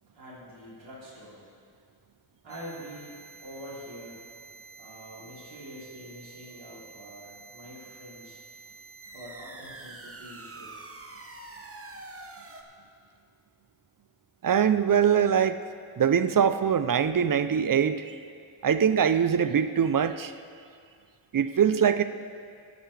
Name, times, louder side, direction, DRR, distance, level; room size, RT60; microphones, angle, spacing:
voice 1, 0.1-1.4 2.4-4.2 4.8-8.4 9.1-10.9, equal, 65° right, -9 dB, 3.3 m, -45 dB
sound 1, 2.5-12.6, right 3 dB, 30° right, 0.9 m, -47 dB
voice 2, 14.4-15.6 16.0-18.2 18.6-20.3 21.3-22.0, right 8 dB, 45° right, 12 dB, 0.5 m, -23 dB
19.0 x 8.1 x 3.3 m, 2.2 s
wide cardioid pair, 70°, 48 cm